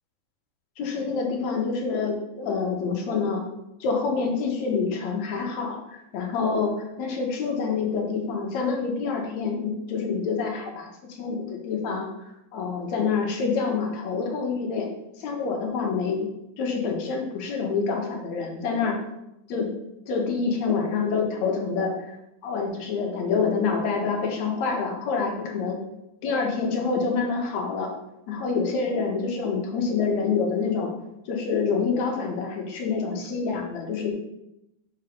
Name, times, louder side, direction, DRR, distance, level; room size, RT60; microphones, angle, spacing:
voice 1, 0.8-3.4 3.8-10.9 11.2-12.1 12.5-14.9 15.2-16.3 16.6-19.0 19.5-19.7 20.1-21.9 22.4-25.8 26.2-27.9 28.3-30.9 31.3-34.1, left 5 dB, 65° left, 1 dB, 2.5 m, -27 dB
6.5 x 6.0 x 5.3 m, 0.87 s
omnidirectional pair, 3.7 m